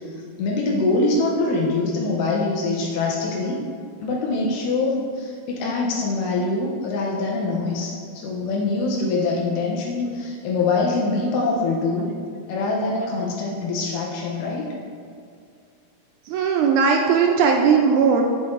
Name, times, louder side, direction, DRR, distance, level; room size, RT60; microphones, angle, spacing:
voice 1, 0.1-3.6 4.0-12.1 12.5-14.7, left 3 dB, 90° left, -2 dB, 2.3 m, -24 dB
voice 2, 16.3-18.2, right 6 dB, 80° right, 2 dB, 1.8 m, -18 dB
8.5 x 5.9 x 2.5 m, 2.3 s
omnidirectional pair, 3.8 m